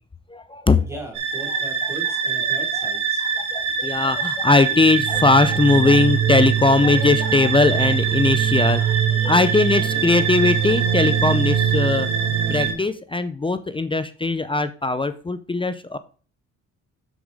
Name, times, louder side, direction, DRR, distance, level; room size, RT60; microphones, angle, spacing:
voice 1, 0.3-0.8 1.8-1.9 2.8-2.9 3.4-16.0, left 3 dB, 15° left, 12 dB, 0.6 m, -20 dB
voice 2, 0.8-3.2 9.2-9.3 9.8-10.0, right 1 dB, 10° right, -1 dB, 4.0 m, -38 dB
sound 1, 1.2-12.7, right 8 dB, 70° right, 2.0 m, -22 dB
7.2 x 7.1 x 3.5 m, 0.38 s
cardioid pair, 90°, 30 cm